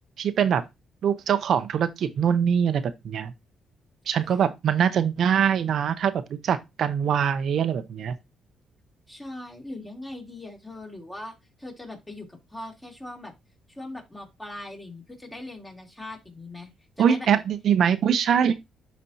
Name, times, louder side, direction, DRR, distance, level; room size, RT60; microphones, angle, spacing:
voice 1, 0.2-0.6 1.0-3.3 4.1-8.1 17.0-18.6, right 8 dB, 65° right, 0.6 m, -23 dB
voice 2, 9.1-13.3 13.7-16.7 17.0-17.3, left 2 dB, 15° left, 2.6 m, -40 dB
12.0 x 4.2 x 2.8 m
cardioid pair, 90°, 0 cm